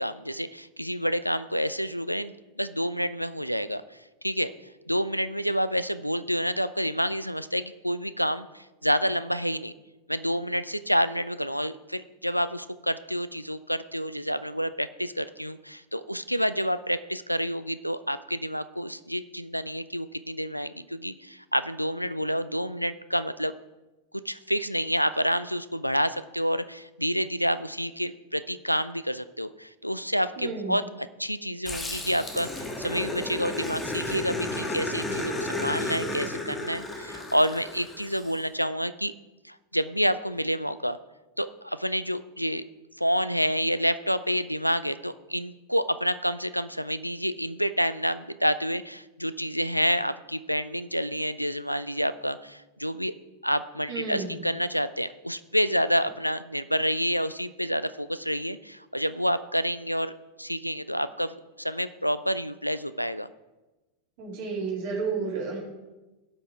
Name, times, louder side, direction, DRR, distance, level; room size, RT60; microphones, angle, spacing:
voice 1, 0.0-3.8 4.2-4.5 4.9-9.7 10.1-23.5 24.2-30.8 31.2-39.1 39.4-41.0 41.4-42.6 43.0-53.1 53.4-60.1 60.4-63.3, equal, 90° left, 14 dB, 0.4 m, -28 dB
voice 2, 30.4-30.8 53.9-54.4 64.2-65.6, right 4 dB, 50° right, -3 dB, 3.4 m, -31 dB
Growling, 31.7-38.3, left 2 dB, 15° left, 1.7 m, -33 dB
17.0 x 5.9 x 3.6 m, 1.1 s
figure-of-eight pair, 90°, 0 cm